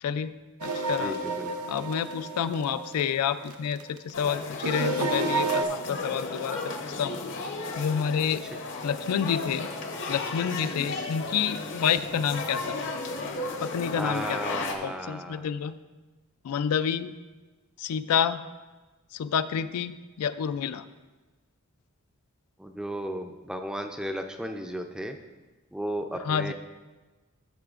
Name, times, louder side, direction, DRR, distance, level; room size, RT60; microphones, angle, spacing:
voice 1, 0.0-0.3 0.6-1.2 1.7-6.7 7.0-7.2 7.8-8.4 8.8-9.7 10.1-12.8 13.6-14.4 14.8-15.7 16.4-17.1 17.8-18.4 19.1-20.8 26.3-26.5, left 8 dB, 85° left, 13 dB, 0.3 m, -28 dB
sound 1, 0.6-4.0 4.6-5.6, right 3 dB, 80° right, 0.7 m, -30 dB
voice 2, 0.9-1.5 8.5-8.6 13.9-15.5 22.6-25.2 25.7-26.5, equal, 5° right, 5 dB, 0.4 m, -34 dB
sound 2, 4.1-14.8, left 3 dB, 55° left, 0.7 m, -34 dB
12.5 x 6.6 x 2.4 m, 1.3 s
head